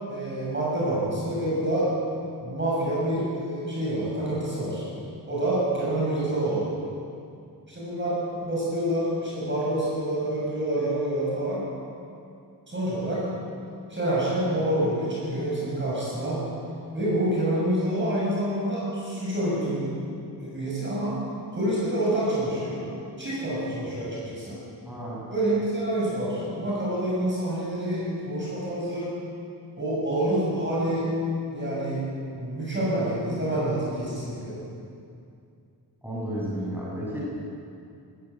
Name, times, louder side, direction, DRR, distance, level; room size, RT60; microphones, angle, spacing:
voice 1, 0.1-1.9 2.4-4.9 5.3-6.7 7.7-11.7 12.7-13.2 13.9-16.4 16.9-19.9 20.4-21.2 21.5-22.8 23.2-24.6 25.3-29.1 29.8-31.1 31.5-32.0 32.3-34.6, right 1 dB, 30° right, -6 dB, 6.6 m, -27 dB
voice 2, 24.9-25.2 36.0-37.2, right 1 dB, 5° right, -7 dB, 7.0 m, -32 dB
19.0 x 15.5 x 9.0 m, 2.5 s
wide cardioid pair, 155°, 41 cm